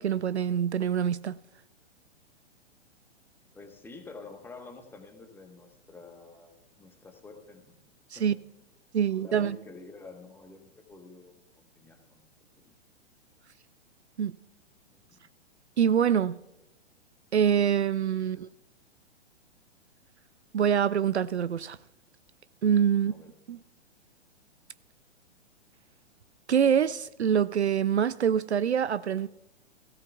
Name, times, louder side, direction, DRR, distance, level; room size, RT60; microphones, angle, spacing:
voice 1, 0.0-1.4 8.1-8.4 8.9-9.6 14.2-14.3 15.8-16.4 17.3-18.5 20.5-21.8 22.6-23.1 23.5-23.6 26.5-29.3, right 8 dB, 70° right, 0.5 m, -25 dB
voice 2, 3.5-7.8 8.1-8.4 9.1-12.3 12.6-12.7 14.9-15.3 18.2-18.4 23.0-23.3, left 3 dB, 5° left, 1.1 m, -49 dB
17.5 x 16.0 x 2.3 m
figure-of-eight pair, 115°, 35 cm